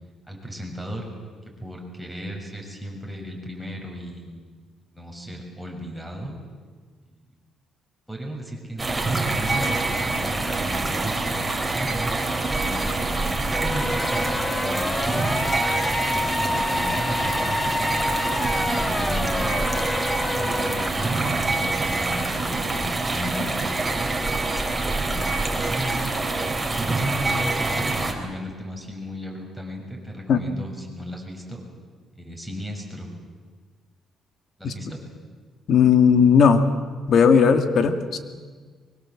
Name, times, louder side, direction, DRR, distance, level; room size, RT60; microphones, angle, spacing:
voice 1, 0.3-1.1 1.6-4.3 4.9-6.3 7.1-7.3 8.1-12.1 12.6-14.4 14.6-15.1 16.1-17.9 18.5-19.6 20.3-23.5 24.9-26.0 26.7-31.6 32.1-33.1 34.6-35.0, equal, ahead, 2 dB, 6.9 m, -35 dB
sound 1, 8.8-28.1, right 2 dB, 15° right, 3.9 m, -25 dB
sound 2, 13.5-20.9, left 3 dB, 20° left, 0.7 m, -28 dB
voice 2, 35.7-36.7 37.1-38.2, left 6 dB, 65° left, 8 dB, 2.2 m, -16 dB
24.0 x 23.0 x 7.7 m, 1.5 s
cardioid pair, 90°, 0 cm